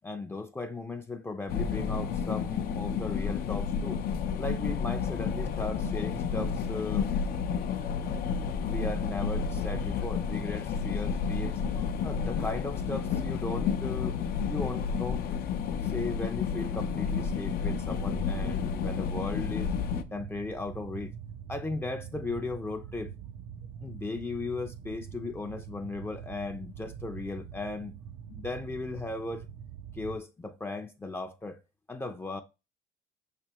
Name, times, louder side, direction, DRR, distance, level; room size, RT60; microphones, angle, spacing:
voice 1, 0.0-4.0 4.4-7.1 8.6-15.2 15.8-19.7 20.1-21.1 21.5-23.1 23.8-27.9 28.3-29.5 29.9-31.6 31.9-32.4, left 3 dB, 15° left, 0.5 m, -37 dB
sound 1, 1.5-20.0, left 6 dB, 65° left, 0.6 m, -31 dB
sound 2, 17.6-30.2, right 8 dB, 65° right, 0.4 m, -44 dB
5.5 x 3.3 x 2.9 m
cardioid pair, 110°, 17 cm